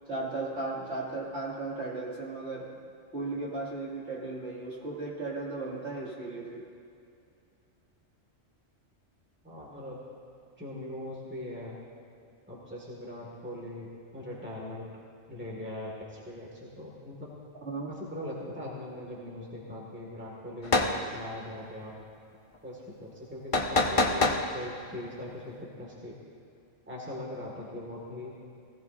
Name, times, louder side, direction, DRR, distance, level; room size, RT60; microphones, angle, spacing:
voice 1, 0.1-2.8 3.1-6.6 17.6-18.0, right 3 dB, 55° right, -4 dB, 2.7 m, -36 dB
voice 2, 9.4-10.0 10.6-11.8 12.5-14.9 15.3-17.3 17.9-21.9 22.6-24.3 24.5-26.2 26.9-28.3, left 1 dB, 10° right, -3 dB, 2.0 m, -41 dB
sound 1, 20.6-20.9 23.5-24.4, left 2 dB, 30° left, 0.8 m, -24 dB
18.0 x 17.0 x 2.7 m, 2.5 s
omnidirectional pair, 1.3 m